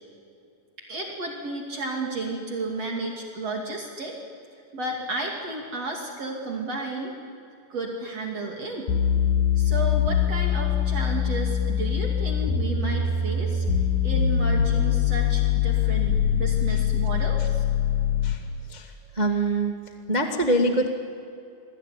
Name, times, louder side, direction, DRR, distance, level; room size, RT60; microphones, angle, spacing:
voice 1, 0.9-4.1 4.7-7.1 7.7-8.9 9.6-13.6 14.0-17.6, right 2 dB, 45° right, 0 dB, 3.4 m, -32 dB
sound 1, 8.9-18.5, left 8 dB, 70° left, 2.8 m, -23 dB
voice 2, 19.1-19.7 20.1-20.9, right 1 dB, 80° right, 3 dB, 0.4 m, -23 dB
27.5 x 22.0 x 9.9 m, 2.6 s
omnidirectional pair, 4.3 m